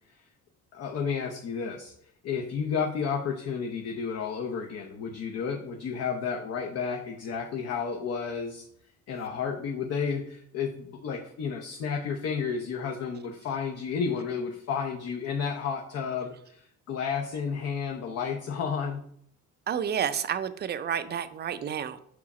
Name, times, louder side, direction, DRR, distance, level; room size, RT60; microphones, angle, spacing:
voice 1, 0.7-1.9 2.2-8.6 9.1-19.0, left 6 dB, 55° left, 2 dB, 0.8 m, -32 dB
voice 2, 19.7-22.0, right 8 dB, 35° right, 12 dB, 0.4 m, -30 dB
5.9 x 4.8 x 4.2 m, 0.68 s
cardioid pair, 130°, 31 cm